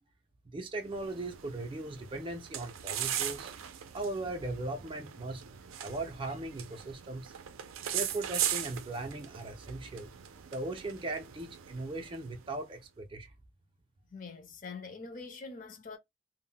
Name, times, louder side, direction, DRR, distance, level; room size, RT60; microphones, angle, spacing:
voice 1, 0.5-3.5 3.9-5.5 5.8-7.3 7.9-10.1 10.5-13.3, right 2 dB, 25° right, 0.4 m, -38 dB
sound 1, 0.8-12.6, right 10 dB, 85° right, 0.4 m, -39 dB
voice 2, 14.1-16.0, left 4 dB, 40° left, 0.5 m, -44 dB
2.1 x 2.0 x 3.7 m
head